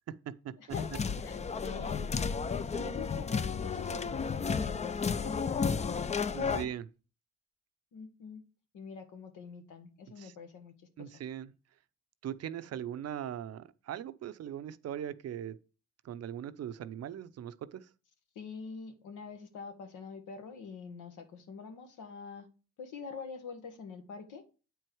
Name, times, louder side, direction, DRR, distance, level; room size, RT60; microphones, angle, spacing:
voice 1, 0.1-0.5 6.3-6.9 10.2-10.3 11.0-11.5 12.2-15.6 16.0-17.9, right 10 dB, 55° right, 0.6 m, -40 dB
voice 2, 0.6-6.7 7.9-8.4 8.7-10.7 11.0-11.1 12.7-12.8 18.3-22.5 22.8-24.4, left 5 dB, 85° left, 1.5 m, -46 dB
sound 1, 0.7-6.6, left 5 dB, 25° left, 0.4 m, -32 dB
8.5 x 4.6 x 4.6 m
cardioid pair, 90°, 30 cm